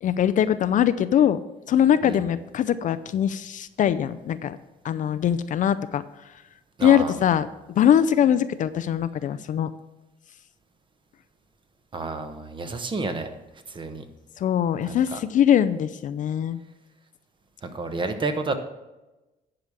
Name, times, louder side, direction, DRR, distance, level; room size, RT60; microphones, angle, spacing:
voice 1, 0.0-1.4 1.7-4.6 4.8-6.0 6.8-9.7 14.4-16.6, left 9 dB, 50° left, 13 dB, 0.5 m, -22 dB
voice 2, 6.8-7.2 11.9-13.3 13.7-14.0 14.8-15.2 17.6-18.5, right 3 dB, 30° right, 8 dB, 1.1 m, -30 dB
10.5 x 4.9 x 7.3 m, 1.0 s
cardioid pair, 110°, 17 cm